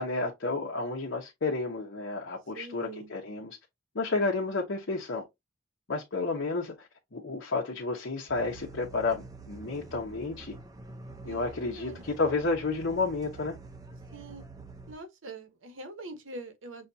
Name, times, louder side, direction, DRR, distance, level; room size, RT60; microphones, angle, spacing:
voice 1, 0.0-3.6 3.9-5.2 5.9-10.5 11.3-13.6, left 3 dB, 65° left, 0.9 m, -31 dB
voice 2, 2.5-3.1 11.2-12.4 14.1-14.4 14.9-16.9, right 2 dB, 75° right, 1.0 m, -44 dB
sound 1, 8.3-14.9, right 3 dB, 20° right, 0.6 m, -47 dB
6.4 x 2.4 x 2.7 m
head